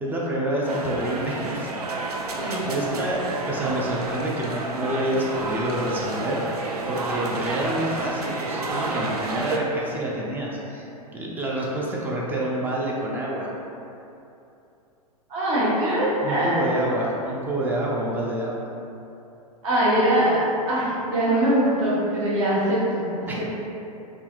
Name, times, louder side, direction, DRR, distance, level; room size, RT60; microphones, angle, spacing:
voice 1, 0.0-1.7 2.4-3.2 3.5-13.5 16.2-18.6 23.3-23.4, right 1 dB, 10° right, -4 dB, 0.3 m, -28 dB
sound 1, 0.7-9.6, right 2 dB, 75° right, 0.4 m, -30 dB
voice 2, 15.3-16.7 19.6-23.4, right 1 dB, 55° right, -7 dB, 1.0 m, -22 dB
3.3 x 2.6 x 2.2 m, 2.8 s
figure-of-eight pair, 100°, 20 cm